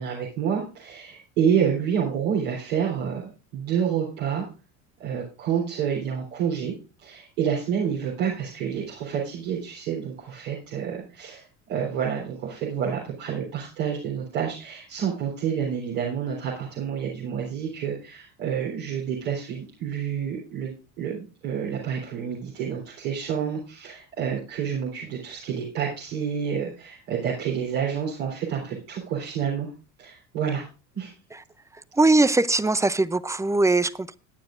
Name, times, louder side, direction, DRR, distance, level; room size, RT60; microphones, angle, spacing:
voice 1, 0.0-4.4 5.0-6.7 7.0-29.7 30.0-30.6 30.9-31.1, right 8 dB, 75° right, 3.8 m, -28 dB
voice 2, 31.7-34.1, right 2 dB, 10° right, 0.6 m, -21 dB
20.0 x 9.6 x 2.5 m
hypercardioid pair, 70°, 38 cm